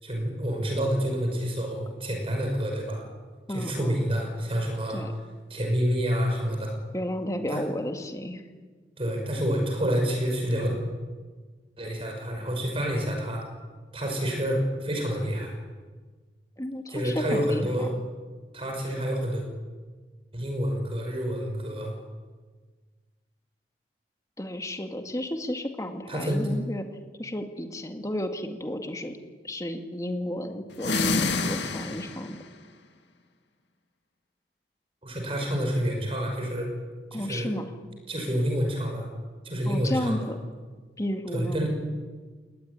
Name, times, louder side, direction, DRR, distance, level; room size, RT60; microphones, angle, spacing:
voice 1, 0.0-3.0 3.5-5.0 5.5-6.7 7.5-7.6 9.0-10.7 11.8-13.4 13.9-15.6 16.9-17.9 18.5-19.4 20.3-21.9 26.1-26.5 35.0-36.7 37.1-37.5 38.1-39.1 39.4-40.3 41.3-41.7, equal, 35° right, 2 dB, 5.8 m, -28 dB
voice 2, 3.5-4.0 4.9-5.1 6.9-8.4 16.6-17.9 24.4-26.9 27.2-29.2 29.4-32.4 37.1-37.7 39.7-40.4 41.0-41.7, left 1 dB, 20° left, 5 dB, 2.1 m, -32 dB
sound 1, 30.7-32.4, left 3 dB, 85° left, 2.3 m, -27 dB
20.5 x 19.5 x 9.8 m, 1.4 s
head